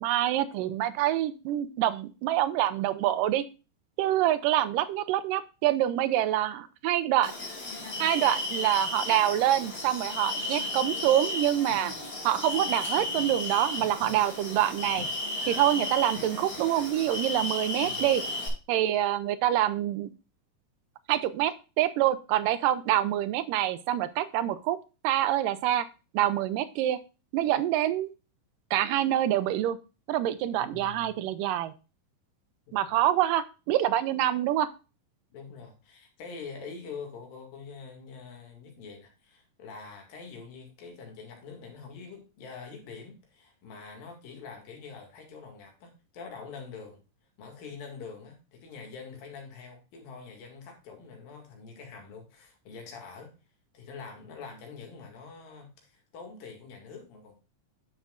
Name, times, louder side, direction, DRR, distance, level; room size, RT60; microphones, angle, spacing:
voice 1, 0.0-3.5 4.0-7.3 8.0-11.9 12.2-15.1 15.5-18.2 18.7-20.1 21.1-24.8 25.0-25.9 26.1-27.0 27.3-28.1 28.7-29.8 30.1-31.7 32.7-34.7, right 12 dB, 80° right, 2.2 m, -26 dB
sound 1, 7.2-18.5, left 2 dB, 30° left, 2.7 m, -34 dB
voice 2, 17.8-18.1 30.5-31.1 32.9-33.0 35.3-47.0 47.4-53.3 53.7-57.4, left 5 dB, 80° left, 3.9 m, -45 dB
10.0 x 7.3 x 2.4 m
omnidirectional pair, 4.0 m